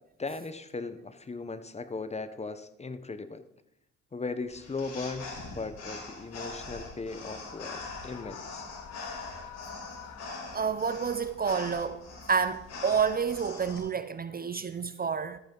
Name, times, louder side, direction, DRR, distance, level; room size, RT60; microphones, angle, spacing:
voice 1, 0.2-3.4 4.1-8.7, left 3 dB, 20° left, 0.8 m, -38 dB
sound 1, 4.5-13.8, left 3 dB, 55° left, 4.2 m, -43 dB
Screaming, 7.4-11.0, left 10 dB, 75° left, 1.1 m, -47 dB
voice 2, 10.5-12.0 12.3-15.4, right 6 dB, 30° right, 0.5 m, -29 dB
13.5 x 9.2 x 3.8 m
cardioid pair, 90°, 30 cm